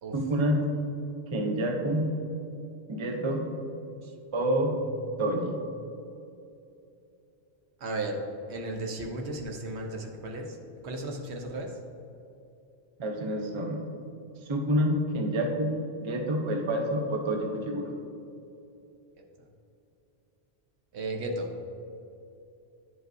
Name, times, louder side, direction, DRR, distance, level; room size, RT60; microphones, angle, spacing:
voice 1, 0.1-0.6 1.3-2.1 2.9-3.5 4.3-4.8 5.2-5.6 13.0-13.8 14.5-17.9, right 1 dB, 30° right, 2 dB, 0.6 m, -28 dB
voice 2, 7.8-8.2 8.5-10.6 10.8-11.8 20.9-21.5, right 2 dB, 80° right, 2 dB, 1.1 m, -34 dB
9.8 x 5.3 x 2.6 m, 2.8 s
omnidirectional pair, 1.1 m